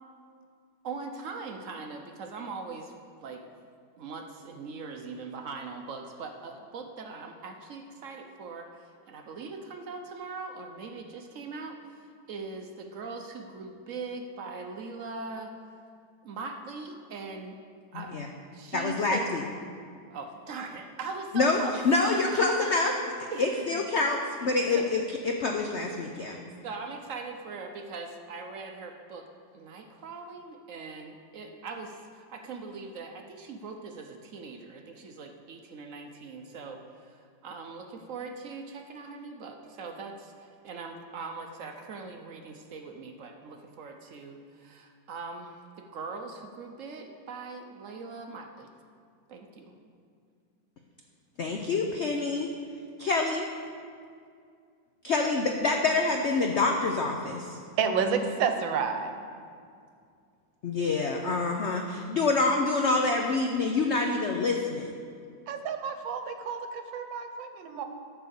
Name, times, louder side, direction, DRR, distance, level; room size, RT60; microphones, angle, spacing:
voice 1, 0.8-2.9 3.2-3.4 4.0-15.5 16.2-17.6 17.9-18.2 18.5-19.3 20.1-21.8 22.1-22.5 23.3-23.8 24.4-24.9 26.6-29.3 29.5-48.7 49.3-49.7, right 4 dB, 65° right, 4 dB, 0.8 m, -41 dB
voice 2, 17.9-18.3 18.7-19.4 21.3-21.6 21.8-22.9 23.2-26.4 51.4-52.5 53.0-53.4 55.0-57.6 60.6-64.9, left 3 dB, 85° left, 2 dB, 0.6 m, -26 dB
voice 3, 57.8-59.1 65.5-67.8, right 6 dB, 80° right, 6 dB, 1.5 m, -30 dB
12.5 x 4.6 x 6.9 m, 2.3 s
omnidirectional pair, 2.0 m